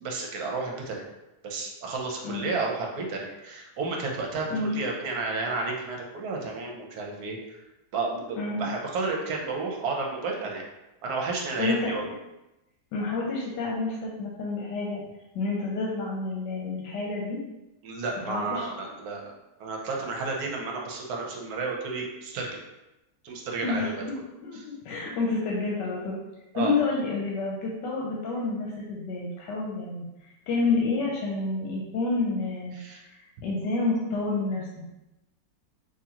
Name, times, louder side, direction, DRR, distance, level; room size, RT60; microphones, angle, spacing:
voice 1, 0.0-1.0 1.4-7.6 7.9-10.6 11.0-12.1 17.8-19.3 19.6-22.5 23.2-23.8 26.5-26.7 32.8-33.0, right 3 dB, 65° right, 0 dB, 1.1 m, -32 dB
voice 2, 8.4-8.7 11.6-12.2 12.9-15.0 15.3-17.4 18.2-18.7 23.6-24.0 24.4-26.2 26.5-30.0 30.5-33.1 33.4-34.8, left 3 dB, 80° left, -3 dB, 1.2 m, -29 dB
3.8 x 2.8 x 2.9 m, 0.95 s
omnidirectional pair, 1.9 m